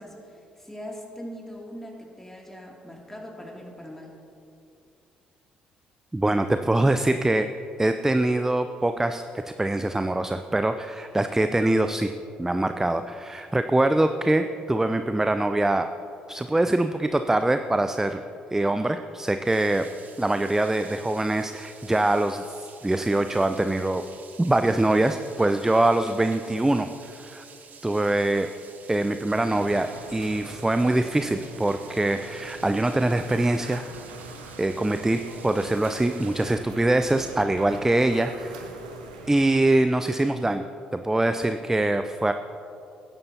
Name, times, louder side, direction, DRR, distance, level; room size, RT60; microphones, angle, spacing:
voice 1, 0.0-4.2, equal, 10° left, -1 dB, 2.6 m, -41 dB
voice 2, 6.1-7.5 7.8-12.1 12.4-15.9 16.3-18.2 18.5-19.8 20.2-24.0 24.4-27.4 27.8-28.5 28.9-33.8 34.6-38.6 39.3-40.6 40.9-42.3, right 2 dB, 10° right, 8 dB, 0.5 m, -23 dB
sound 1, 19.4-36.5, right 5 dB, 45° right, 1.4 m, -49 dB
sound 2, 29.3-39.6, right 3 dB, 80° right, 1.0 m, -42 dB
20.0 x 10.5 x 2.9 m, 2.7 s
figure-of-eight pair, 45°, 4 cm